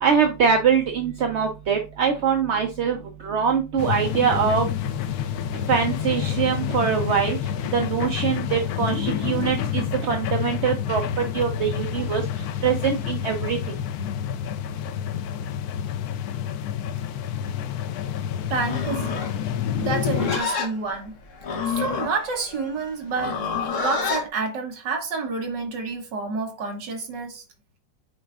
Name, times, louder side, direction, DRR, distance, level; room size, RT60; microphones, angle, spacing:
voice 1, 0.0-3.0 3.2-4.7 5.7-7.4 7.7-11.0 11.3-12.2 12.6-13.6, right 7 dB, 55° right, 0.8 m, -23 dB
sound 1, 3.8-20.4, left 9 dB, 70° left, 1.0 m, -28 dB
voice 2, 18.5-19.2 19.8-21.2 21.7-23.4 23.8-27.4, right 4 dB, 70° right, 1.8 m, -29 dB
Livestock farm animals working animals, 18.6-24.3, left 5 dB, 50° left, 1.2 m, -29 dB
8.6 x 4.5 x 2.4 m
omnidirectional pair, 2.0 m